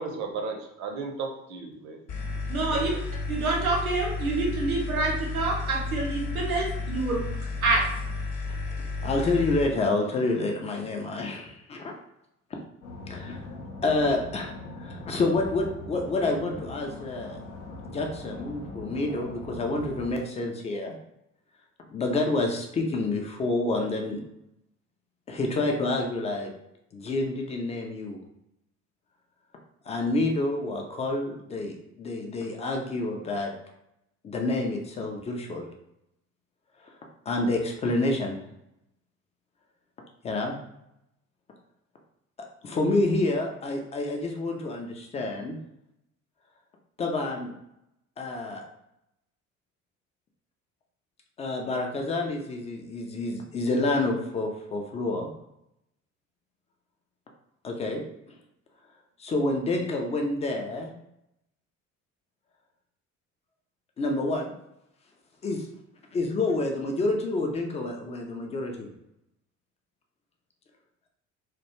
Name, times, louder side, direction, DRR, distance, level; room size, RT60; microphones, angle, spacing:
voice 1, 0.0-2.0 2.7-3.0, right 4 dB, 45° right, 3 dB, 0.6 m, -35 dB
sound 1, 2.1-9.7, left 3 dB, 45° left, 0.7 m, -32 dB
voice 2, 2.5-3.0 3.3-7.2 7.6-7.8, right 3 dB, 85° right, -2 dB, 0.6 m, -27 dB
voice 3, 9.0-11.9 13.1-13.4 13.8-17.4 17.8-21.0 21.9-24.2 25.3-26.5 26.9-28.2 29.9-33.5 34.2-35.6 37.3-38.4 40.2-40.5 42.6-45.6 47.0-47.5 48.2-48.6 51.4-55.3 57.6-58.0 59.2-60.9 64.0-64.5 65.4-65.7 66.1-68.9, left 2 dB, 20° left, 2 dB, 0.3 m, -28 dB
sound 2, 12.8-20.1, left 2 dB, 80° left, 0.6 m, -41 dB
2.3 x 2.2 x 2.9 m, 0.82 s
figure-of-eight pair, 55°, 41 cm